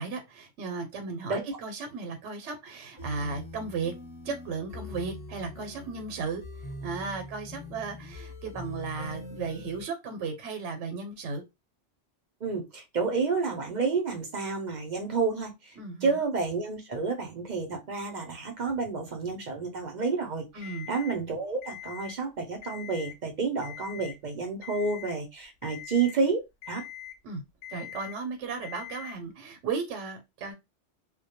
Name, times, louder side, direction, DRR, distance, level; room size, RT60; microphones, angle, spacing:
voice 1, 0.0-3.9 4.2-11.4 15.8-16.2 20.5-20.9 27.2-27.4 27.7-30.5, right 4 dB, 80° right, 0.9 m, -35 dB
sound 1, 3.0-9.8, left 2 dB, 30° left, 0.8 m, -43 dB
voice 2, 12.4-15.8 16.0-26.8, right 4 dB, 55° right, 0.5 m, -30 dB
Alarm, 20.6-21.2 21.6-22.2 22.6-23.2 23.6-24.2 24.6-25.2 25.6-26.2 26.6-27.2 27.6-28.2 28.6-29.2, left 12 dB, 85° left, 0.9 m, -43 dB
2.2 x 2.1 x 2.8 m
omnidirectional pair, 1.2 m